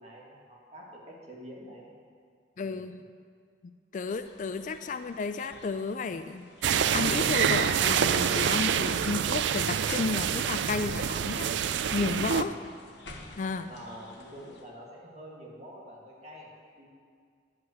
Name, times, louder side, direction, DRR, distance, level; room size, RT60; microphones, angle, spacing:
voice 1, 0.0-1.9 2.6-2.9 12.2-12.6 13.0-13.3 13.7-16.5 16.8-16.9, equal, 35° right, -3 dB, 2.1 m, -47 dB
voice 2, 2.6-3.0 3.9-6.5 6.9-11.5 11.9-12.6 13.4-13.7, left 4 dB, 45° left, 10 dB, 0.3 m, -32 dB
sound 1, 4.0-14.6, left 2 dB, 70° left, 1.2 m, -53 dB
sound 2, 6.6-12.4, right 8 dB, 75° right, 0.4 m, -27 dB
11.0 x 5.8 x 7.9 m, 2.1 s
head